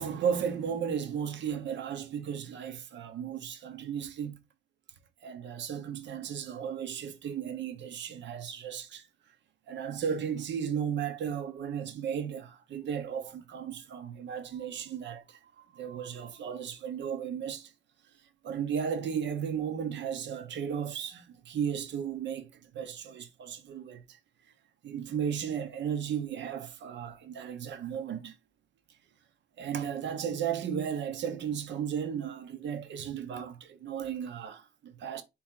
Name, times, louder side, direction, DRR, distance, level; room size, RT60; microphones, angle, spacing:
voice 1, 0.0-4.4 5.2-9.1 9.7-17.7 18.4-24.2 24.8-28.3 29.6-35.2, right 8 dB, 65° right, 1.0 m, -35 dB
4.2 x 3.1 x 3.7 m
cardioid pair, 90°, 20 cm